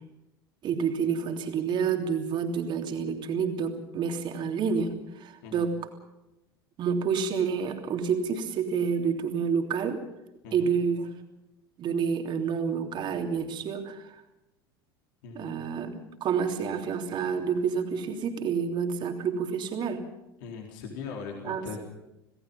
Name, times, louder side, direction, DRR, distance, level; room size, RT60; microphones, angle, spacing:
voice 1, 0.6-5.7 6.8-10.0 10.5-11.1 11.8-14.2 15.3-20.0 21.4-21.7, right 6 dB, 40° right, 5 dB, 3.2 m, -29 dB
voice 2, 20.4-21.8, left 5 dB, 55° left, 1 dB, 4.1 m, -39 dB
27.5 x 18.5 x 5.7 m, 0.92 s
figure-of-eight pair, 75°, 12 cm